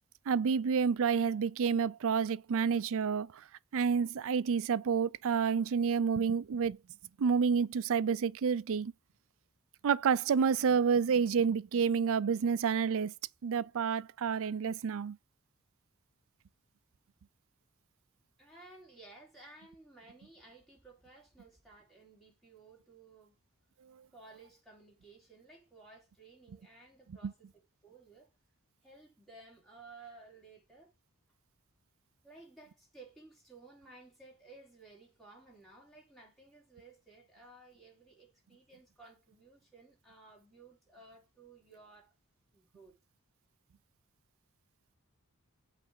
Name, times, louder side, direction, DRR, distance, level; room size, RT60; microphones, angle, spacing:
voice 1, 0.3-3.4 3.7-6.8 7.2-8.9 9.8-13.1 13.4-15.2 27.2-27.3, right 6 dB, 65° right, 0.4 m, -29 dB
voice 2, 18.4-23.3 24.1-28.3 28.8-30.9 32.2-42.1 42.5-42.9, right 3 dB, ahead, 3.4 m, -56 dB
8.1 x 3.4 x 6.3 m
head